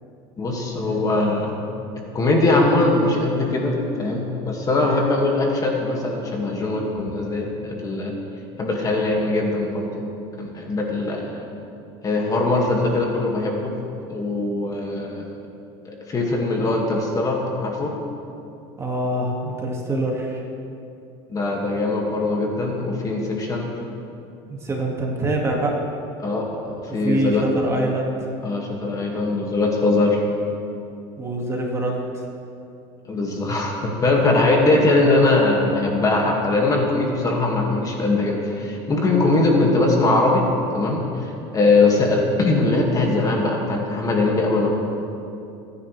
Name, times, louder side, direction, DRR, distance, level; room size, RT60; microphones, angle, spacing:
voice 1, 0.4-1.6 2.1-8.1 8.6-10.0 10.4-11.4 12.0-13.7 14.1-15.3 15.9-17.9 21.3-23.7 26.2-27.4 28.4-30.2 33.1-40.5 40.7-44.7, left 2 dB, 25° left, 0 dB, 2.1 m, -21 dB
voice 2, 18.8-20.4 24.5-25.8 26.9-28.1 31.2-32.0, right 1 dB, 20° right, -1 dB, 2.2 m, -24 dB
22.0 x 10.0 x 3.4 m, 2.7 s
supercardioid pair, 115°, 13 cm